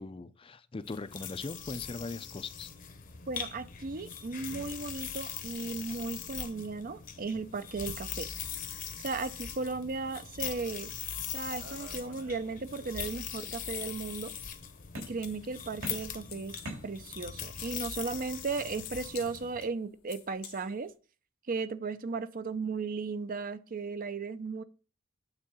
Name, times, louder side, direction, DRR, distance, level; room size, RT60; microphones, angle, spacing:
voice 1, 0.0-2.7, left 3 dB, 25° left, 0.5 m, -40 dB
sound 1, 0.8-19.7, left 8 dB, 40° left, 0.8 m, -41 dB
voice 2, 3.3-8.3 9.0-10.9 11.3-14.3 15.0-16.6 16.8-20.9 21.5-24.6, right 4 dB, 40° right, 0.5 m, -36 dB
sound 2, 11.6-12.9 13.3-14.0 14.9-15.5 15.8-17.4, equal, 70° right, 3.5 m, -46 dB
sound 3, 12.7-21.0, left 11 dB, 80° left, 1.2 m, -53 dB
8.9 x 3.8 x 7.0 m
head